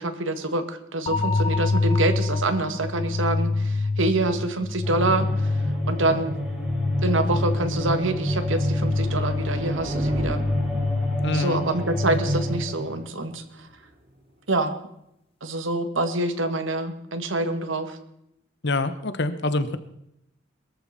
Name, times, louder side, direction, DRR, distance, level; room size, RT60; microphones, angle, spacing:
voice 1, 0.0-5.5 5.9-6.4 7.0-10.4 11.3-13.4 14.5-14.7 15.4-18.0, right 2 dB, 75° right, 9 dB, 1.8 m, -26 dB
sound 1, 1.1-13.0, left 3 dB, 30° left, 0.5 m, -27 dB
sound 2, 4.8-13.0, equal, 5° right, 5.1 m, -30 dB
sound 3, 5.8-14.4, equal, 45° right, 4.3 m, -41 dB
voice 2, 11.2-11.6 18.6-19.8, left 2 dB, 60° left, 11 dB, 1.2 m, -25 dB
22.5 x 13.5 x 4.3 m, 0.81 s
head